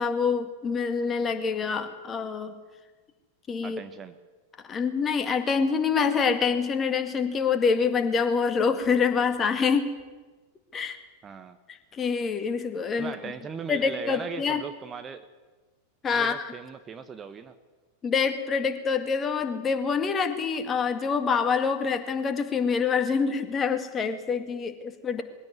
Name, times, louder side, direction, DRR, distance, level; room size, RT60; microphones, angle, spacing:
voice 1, 0.0-2.5 3.5-3.8 4.7-9.9 10.7-11.0 11.9-13.1 13.7-14.6 16.0-16.5 18.0-25.2, left 5 dB, 20° left, 8 dB, 2.1 m, -26 dB
voice 2, 3.6-4.2 11.2-11.6 13.0-15.3 16.1-17.5, right 6 dB, 20° right, 9 dB, 1.1 m, -38 dB
21.5 x 16.0 x 9.4 m, 1.3 s
figure-of-eight pair, 90°, 0 cm